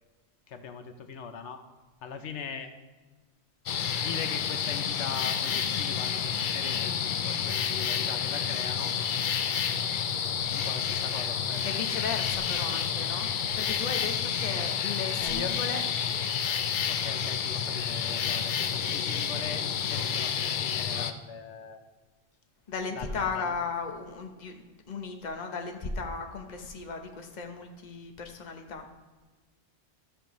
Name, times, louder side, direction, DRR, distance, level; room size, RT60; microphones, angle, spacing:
voice 1, 0.5-1.6 2.0-2.7 3.9-8.9 10.5-11.8 15.2-15.8 16.8-21.8 22.9-23.5, left 6 dB, 85° left, 8 dB, 1.0 m, -40 dB
sound 1, 3.7-21.1, left 7 dB, 60° left, 0.6 m, -29 dB
voice 2, 11.6-15.8 22.7-28.9, left 4 dB, 45° left, 4 dB, 1.0 m, -36 dB
13.0 x 6.7 x 3.0 m, 1.3 s
omnidirectional pair, 1.2 m